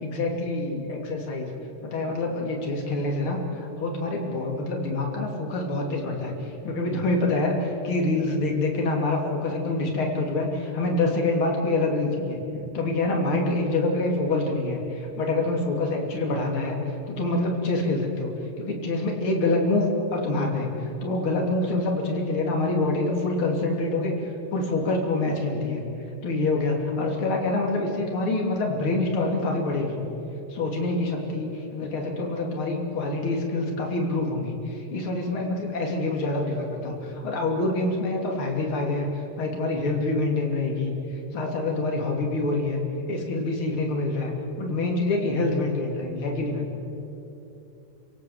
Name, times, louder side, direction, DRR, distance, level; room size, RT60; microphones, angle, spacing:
voice 1, 0.0-1.5 1.8-16.8 17.1-18.3 18.6-24.2 24.5-25.8 26.2-30.0 30.5-39.1 39.4-42.8 43.1-44.3 44.6-46.7, left 2 dB, 35° left, 1 dB, 3.2 m, -26 dB
29.0 x 17.5 x 8.1 m, 2.9 s
omnidirectional pair, 5.2 m